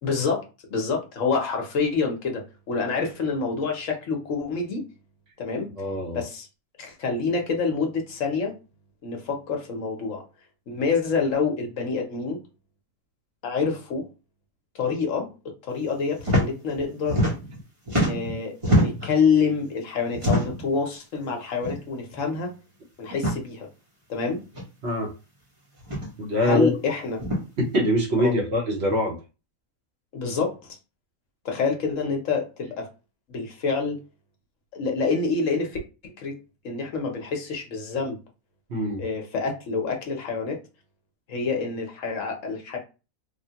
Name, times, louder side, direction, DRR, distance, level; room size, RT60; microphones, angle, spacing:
voice 1, 0.0-4.8 5.4-5.7 6.1-6.5 6.8-8.5 9.0-10.2 10.7-12.4 13.4-14.0 14.7-15.3 15.7-17.3 17.9-22.5 23.0-23.7 24.1-24.4 26.4-27.2 28.2-28.3 30.1-30.8 31.4-32.9 33.3-34.0 34.7-35.8 36.0-36.3 36.6-38.2 39.0-40.6 41.3-42.8, left 5 dB, 65° left, 1.1 m, -27 dB
voice 2, 5.8-6.2 24.8-25.1 26.2-26.7 27.6-29.2 38.7-39.0, equal, 50° right, 1.0 m, -24 dB
sound 1, 16.2-16.5 16.8-17.6 17.9-19.1 20.1-20.7 21.6-21.8 22.1-22.2 23.1-23.4 24.5-24.6 25.8-26.1 27.2-27.4, equal, 25° right, 0.8 m, -24 dB
3.4 x 2.2 x 2.8 m
omnidirectional pair, 1.5 m